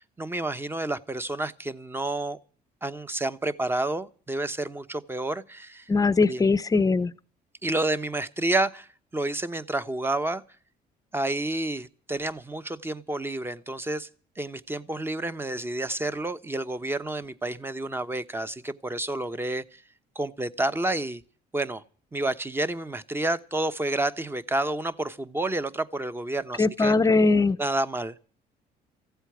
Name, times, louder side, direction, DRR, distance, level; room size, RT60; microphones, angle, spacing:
voice 1, 0.0-2.4 2.8-5.9 6.3-6.4 7.6-10.4 11.1-14.1 14.4-19.8 20.1-21.2 21.5-21.8 22.1-26.9 27.6-28.2, right 2 dB, 15° right, 0.9 m, -29 dB
voice 2, 5.9-7.1 26.6-27.6, left 3 dB, 20° left, 0.7 m, -21 dB
15.5 x 8.1 x 9.3 m
cardioid pair, 110°, 17 cm